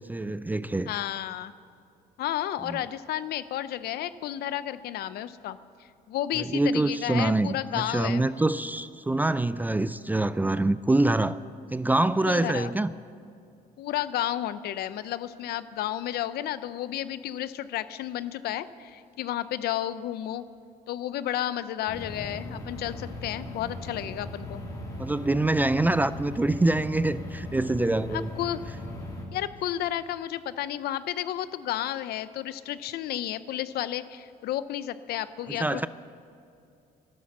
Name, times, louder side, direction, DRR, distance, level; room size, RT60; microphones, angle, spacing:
voice 1, 0.1-0.9 2.7-2.8 6.3-11.4 11.7-12.9 25.0-28.3 35.5-35.9, right 2 dB, 10° right, 15 dB, 0.3 m, -25 dB
voice 2, 0.9-1.5 2.2-8.3 12.3-12.7 13.8-20.4 20.9-24.6 28.1-28.6 29.3-35.9, left 12 dB, 70° left, 15 dB, 0.6 m, -32 dB
sound 1, 21.9-29.3, left 1 dB, 20° left, 2.7 m, -38 dB
12.0 x 12.0 x 7.3 m, 2.5 s
cardioid pair, 110°, 17 cm